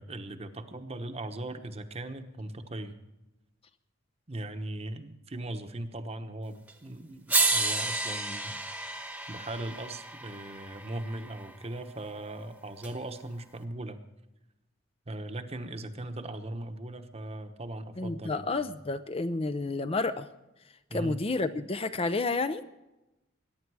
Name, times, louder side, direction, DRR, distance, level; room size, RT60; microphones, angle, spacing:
voice 1, 0.0-3.0 4.3-14.0 15.1-18.7 20.9-21.2, right 1 dB, 30° right, 8 dB, 1.0 m, -39 dB
sound 1, 6.7-6.8 7.3-11.5 12.8-12.9, right 3 dB, 5° right, 1.1 m, -31 dB
voice 2, 18.0-20.3 20.9-22.6, left 3 dB, 30° left, 11 dB, 0.5 m, -30 dB
22.0 x 10.5 x 4.8 m, 0.98 s
head